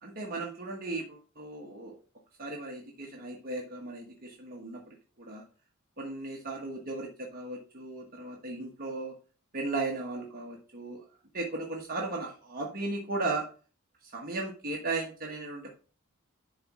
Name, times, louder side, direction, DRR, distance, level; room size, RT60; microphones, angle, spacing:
voice 1, 0.0-1.9 2.4-5.4 6.0-9.1 9.5-11.0 11.3-13.5 14.0-15.7, right 2 dB, 40° right, -1 dB, 1.3 m, -36 dB
11.0 x 4.2 x 4.8 m, 0.37 s
head